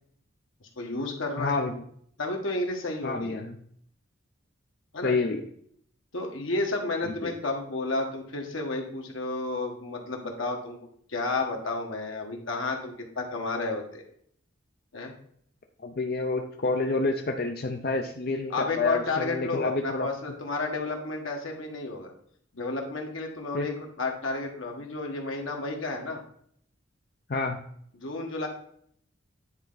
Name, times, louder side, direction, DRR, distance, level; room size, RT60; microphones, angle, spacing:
voice 1, 0.8-1.6 2.2-3.4 4.9-5.1 6.1-10.8 11.1-14.0 14.9-15.1 18.5-22.1 22.5-26.2 27.9-28.5, left 3 dB, 80° left, 2 dB, 1.5 m, -31 dB
voice 2, 1.4-1.7 3.0-3.6 5.0-5.4 7.0-7.3 15.8-20.1 23.5-23.7 27.3-27.6, left 3 dB, 50° left, 3 dB, 0.6 m, -28 dB
9.6 x 4.4 x 3.9 m, 0.64 s
head